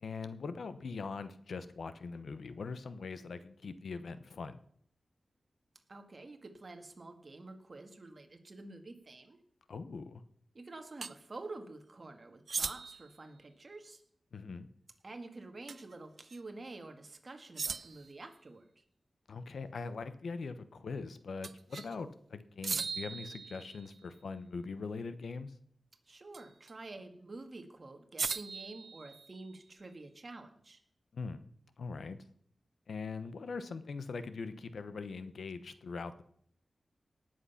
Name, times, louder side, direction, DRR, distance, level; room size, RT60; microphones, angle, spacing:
voice 1, 0.0-4.6 9.7-10.2 14.3-14.7 19.3-25.5 31.1-31.4 31.8-32.2 32.9-36.2, left 4 dB, 85° left, 12 dB, 0.9 m, -42 dB
voice 2, 5.9-9.4 10.5-14.0 15.0-18.8 26.1-30.8, right 2 dB, 40° right, 5 dB, 2.0 m, -48 dB
sound 1, 11.0-11.1 12.5-13.1 15.7-15.9 16.3-16.4 17.6-18.1 21.4-22.0 22.6-24.0 26.3-26.7 28.2-29.6, right 4 dB, 65° right, 0.4 m, -39 dB
18.5 x 7.9 x 5.8 m, 0.65 s
wide cardioid pair, 105°, 0 cm